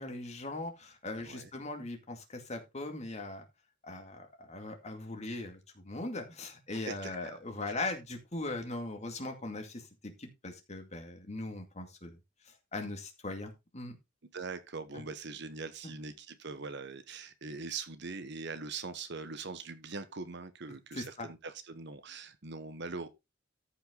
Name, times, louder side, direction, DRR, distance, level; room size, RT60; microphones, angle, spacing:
voice 1, 0.0-3.5 3.8-5.6 5.8-12.2 12.7-14.0 15.8-15.9 20.9-21.3, left 2 dB, 35° left, 2.3 m, -40 dB
voice 2, 1.2-1.5 6.9-7.4 14.3-23.1, right 4 dB, 60° right, 1.2 m, -42 dB
14.0 x 5.7 x 3.9 m
head